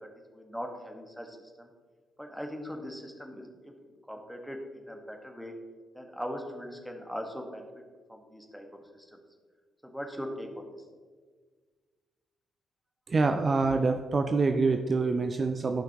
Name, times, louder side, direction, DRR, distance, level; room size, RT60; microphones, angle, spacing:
voice 1, 0.0-1.7 2.2-3.7 4.1-5.5 5.9-7.7 8.1-8.7 8.9-9.1 9.8-10.5, equal, ahead, 3 dB, 1.5 m, -40 dB
voice 2, 13.1-15.8, right 3 dB, 40° right, 7 dB, 0.5 m, -26 dB
14.0 x 5.7 x 3.0 m, 1.5 s
hypercardioid pair, 40°, 0 cm